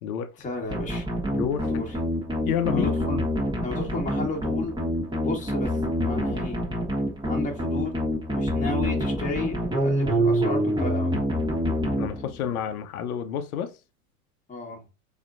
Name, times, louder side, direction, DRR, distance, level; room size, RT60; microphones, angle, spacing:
voice 1, 0.4-1.1 1.7-2.0 2.7-3.3 3.6-4.9 5.2-6.6 7.3-8.0 8.3-11.1 14.5-14.9, left 2 dB, 15° left, 1.5 m, -32 dB
sound 1, 0.7-12.6, equal, 10° right, 1.4 m, -26 dB
voice 2, 1.3-1.7 2.4-2.9 12.0-13.8, left 9 dB, 75° left, 0.8 m, -29 dB
4.2 x 3.0 x 2.5 m
hypercardioid pair, 100°, 44 cm